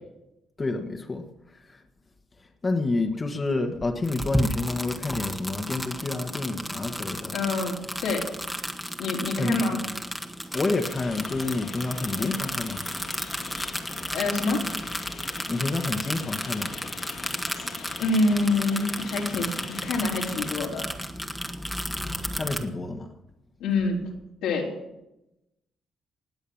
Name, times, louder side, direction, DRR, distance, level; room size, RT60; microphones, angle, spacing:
voice 1, 0.6-1.3 1.6-1.8 2.6-7.4 9.4-9.8 10.5-12.9 15.5-16.8 22.3-23.1, left 3 dB, 30° left, 1.6 m, -29 dB
sound 1, 4.0-22.6, equal, ahead, 1.6 m, -33 dB
voice 2, 7.3-7.8 8.0-8.3 9.0-9.8 12.2-12.4 14.1-14.6 18.0-20.9 23.6-24.0 24.4-24.7, left 3 dB, 90° left, 4.0 m, -26 dB
sound 2, 10.5-20.5, left 6 dB, 70° left, 2.5 m, -42 dB
19.5 x 8.1 x 7.2 m
cardioid pair, 90°, 0 cm